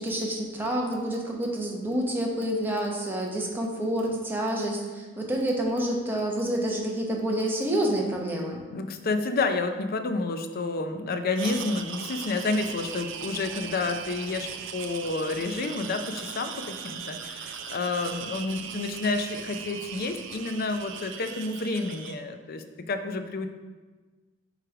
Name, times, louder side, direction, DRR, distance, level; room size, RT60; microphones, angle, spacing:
voice 1, 0.0-8.6, right 1 dB, 10° right, -2 dB, 1.0 m, -28 dB
voice 2, 8.7-23.5, left 3 dB, 50° left, 7 dB, 0.5 m, -30 dB
sound 1, 11.3-22.2, right 7 dB, 65° right, 0.5 m, -39 dB
7.6 x 3.2 x 4.9 m, 1.3 s
head